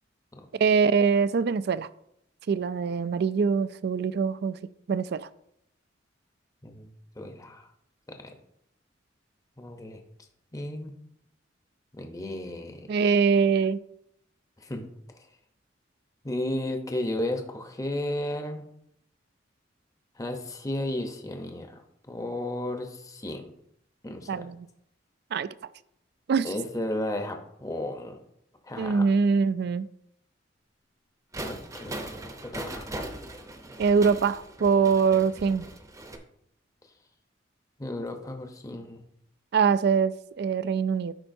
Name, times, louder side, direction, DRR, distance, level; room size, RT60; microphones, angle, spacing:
voice 1, 0.5-1.9 2.5-4.6 4.9-5.3 12.9-13.8 24.3-24.7 25.3-25.5 26.3-26.5 28.8-29.9 33.8-35.6 39.5-41.1, right 5 dB, 60° right, 0.3 m, -23 dB
voice 2, 6.6-7.7 8.1-8.3 9.6-10.0 10.5-10.9 12.0-12.9 14.6-14.9 15.1-15.3 16.2-18.6 20.2-21.8 22.1-23.5 24.0-24.5 26.4-28.2 28.6-29.0 31.4-32.0 32.4-32.9 37.8-39.0, left 1 dB, 20° left, 0.8 m, -34 dB
sound 1, 31.3-36.2, right 1 dB, 15° right, 0.7 m, -39 dB
13.0 x 5.5 x 2.7 m
head